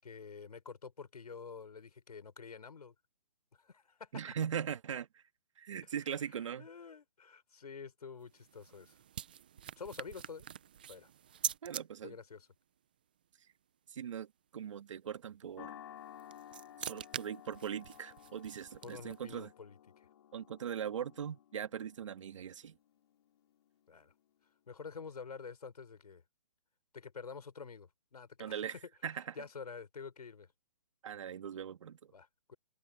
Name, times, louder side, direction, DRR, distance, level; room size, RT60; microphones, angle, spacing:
voice 1, 0.0-2.9 3.5-4.2 5.8-9.0 9.8-10.5 10.9-11.1 12.0-12.5 18.8-20.1 23.9-24.1 24.7-26.2 26.9-28.6 29.3-30.5 32.1-32.6, left 5 dB, 85° left, 5.9 m, -48 dB
voice 2, 4.1-5.2 5.6-6.7 11.6-12.2 13.9-15.8 16.8-19.5 20.3-22.8 28.4-28.7 29.0-29.3 31.0-32.1, right 8 dB, 50° right, 1.7 m, -40 dB
sound 1, 8.2-11.8 16.0-19.3, right 9 dB, 15° right, 0.3 m, -44 dB
sound 2, 15.6-24.1, left 11 dB, 40° left, 2.8 m, -55 dB
hypercardioid pair, 165°, 20 cm